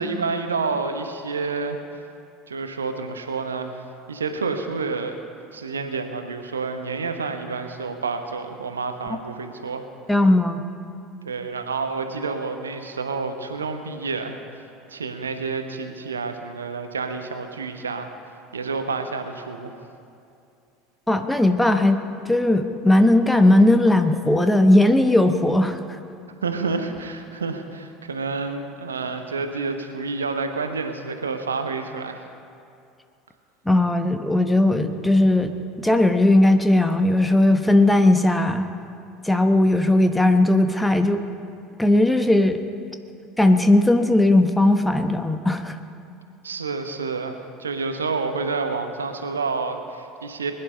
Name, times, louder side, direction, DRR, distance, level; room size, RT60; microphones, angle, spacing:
voice 1, 0.0-2.0 2.5-5.2 5.5-9.8 11.2-18.1 18.5-19.8 26.4-32.2 46.4-50.5, right 4 dB, 80° right, 7 dB, 1.0 m, -29 dB
voice 2, 10.1-10.6 21.1-22.0 22.2-25.8 33.7-35.5 35.8-38.7 39.2-41.2 41.8-42.6 43.4-45.8, left 1 dB, 5° left, 7 dB, 1.0 m, -18 dB
21.0 x 11.0 x 5.5 m, 2.5 s
figure-of-eight pair, 70°, 0 cm